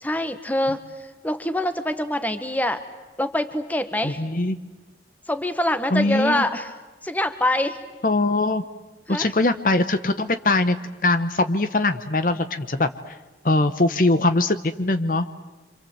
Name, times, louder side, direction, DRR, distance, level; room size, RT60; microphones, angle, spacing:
voice 1, 0.0-2.8 3.2-4.2 5.3-6.7 7.0-7.8 9.1-9.3, left 1 dB, 10° left, 9 dB, 1.4 m, -25 dB
voice 2, 4.0-4.6 5.9-6.4 8.0-8.7 9.1-10.8 11.0-13.1 13.4-15.5, left 2 dB, 50° left, 10 dB, 1.0 m, -22 dB
27.5 x 26.5 x 7.9 m, 1.2 s
head